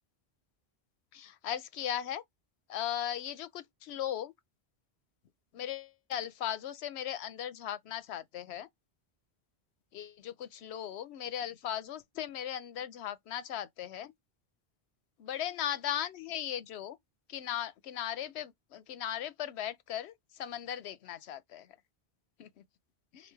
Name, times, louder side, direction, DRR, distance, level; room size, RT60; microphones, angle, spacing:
voice 1, 1.1-2.2 2.7-4.3 5.5-8.7 9.9-14.1 15.2-17.0 17.3-21.7 22.4-22.5, left 10 dB, 85° left, 0.9 m, -37 dB
5.0 x 2.2 x 4.5 m
omnidirectional pair, 1.1 m